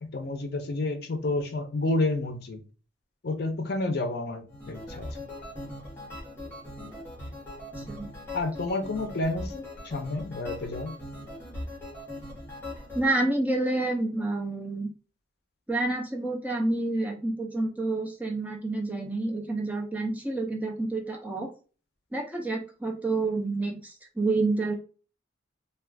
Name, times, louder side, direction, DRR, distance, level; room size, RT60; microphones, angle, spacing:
voice 1, 0.0-2.6 3.2-5.1 8.3-11.0, left 2 dB, 50° left, 6 dB, 0.5 m, -30 dB
sound 1, 4.5-13.1, left 1 dB, 10° left, 0.9 m, -40 dB
voice 2, 7.8-8.1 12.9-14.9 15.7-21.5 22.1-24.7, right 2 dB, 10° right, 1 dB, 0.4 m, -28 dB
2.3 x 2.3 x 3.4 m, 0.35 s
head